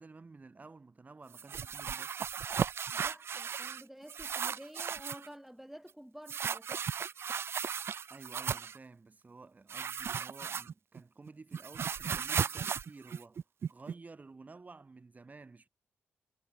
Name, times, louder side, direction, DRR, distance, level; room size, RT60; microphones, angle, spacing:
voice 1, 0.0-2.2 8.1-15.7, right 3 dB, 35° right, 5.4 m, -53 dB
sound 1, 1.3-3.8 4.1-5.3 6.3-8.8 9.7-11.0 11.3-13.9, right 7 dB, 60° right, 0.8 m, -36 dB
voice 2, 2.9-6.9, equal, 5° right, 7.0 m, -50 dB
cardioid pair, 65°, 5 cm